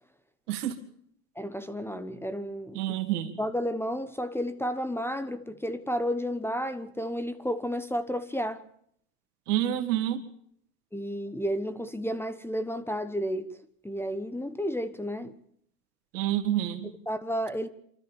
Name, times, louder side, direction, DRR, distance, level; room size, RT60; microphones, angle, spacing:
voice 1, 1.4-2.9 3.4-8.6 10.9-13.5 13.8-15.3 16.8-17.7, equal, 5° left, 1.1 m, -32 dB
voice 2, 2.7-3.3 9.5-10.2 16.1-16.9, right 12 dB, 75° right, 2.5 m, -28 dB
27.0 x 13.5 x 7.2 m
hypercardioid pair, 100°, 46 cm